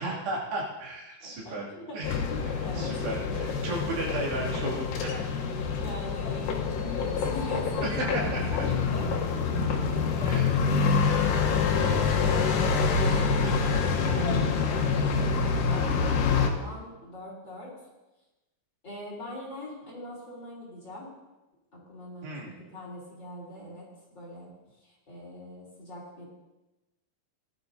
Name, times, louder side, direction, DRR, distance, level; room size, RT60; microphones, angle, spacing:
voice 1, 0.0-1.7 1.9-2.2 2.7-5.3 7.8-8.6 10.3-10.6 13.4-13.6 22.2-22.6, right 2 dB, 70° right, -4 dB, 4.6 m, -34 dB
voice 2, 1.2-2.0 2.2-3.0 5.8-9.1 9.5-12.2 12.6-17.7 18.8-21.1 21.7-24.5 24.8-26.2, left 1 dB, 25° left, -5 dB, 3.5 m, -42 dB
sound 1, 2.0-16.5, left 5 dB, 70° left, 2.3 m, -26 dB
18.5 x 12.0 x 2.7 m, 1.0 s
omnidirectional pair, 5.1 m